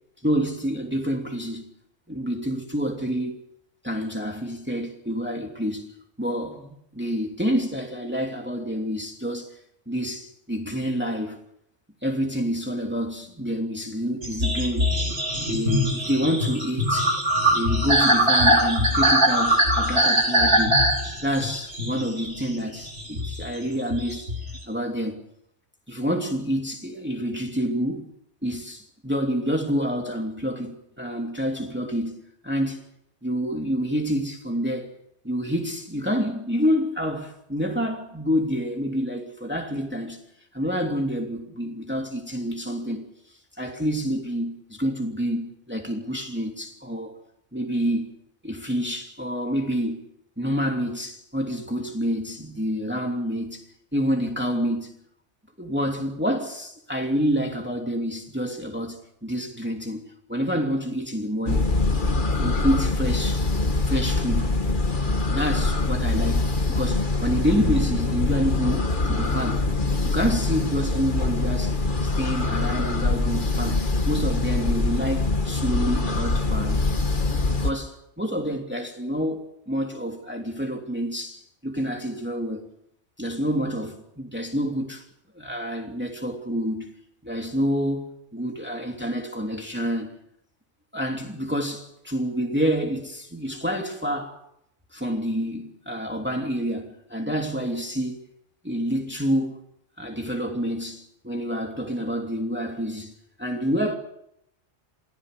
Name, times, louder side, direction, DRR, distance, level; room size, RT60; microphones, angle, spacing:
voice 1, 0.2-1.7 2.1-3.3 3.8-5.9 6.2-9.6 9.9-11.4 12.0-14.9 15.4-17.2 17.5-20.8 21.2-24.3 24.7-25.2 25.9-28.1 28.4-32.8 33.2-34.9 35.2-40.2 40.5-43.1 43.6-47.1 47.5-48.1 48.4-50.0 50.4-53.7 53.9-54.9 55.6-60.0 60.3-61.7 62.4-63.5 63.8-64.6 65.1-69.7 70.0-76.9 77.5-82.7 83.2-85.0 85.3-86.9 87.2-90.1 90.9-94.4 94.9-98.2 98.6-99.6 100.0-103.1 103.4-103.9, equal, 10° right, 2.9 m, -28 dB
sound 1, 14.2-24.6, equal, 70° right, 5.1 m, -22 dB
sound 2, 61.5-77.7, left 3 dB, 45° left, 1.7 m, -24 dB
27.5 x 19.0 x 6.8 m
omnidirectional pair, 1.2 m